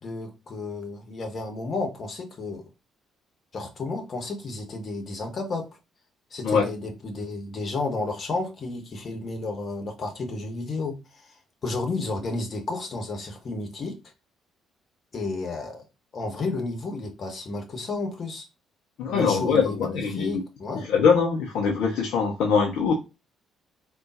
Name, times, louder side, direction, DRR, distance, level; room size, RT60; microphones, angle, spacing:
voice 1, 0.0-2.6 3.5-5.7 6.3-11.3 11.6-14.0 15.1-15.8 16.1-18.5 19.1-20.9, left 3 dB, 45° left, 0.9 m, -32 dB
voice 2, 19.0-20.4 20.9-22.9, left 5 dB, 60° left, 0.5 m, -22 dB
3.6 x 2.3 x 2.5 m
figure-of-eight pair, 45°, 0 cm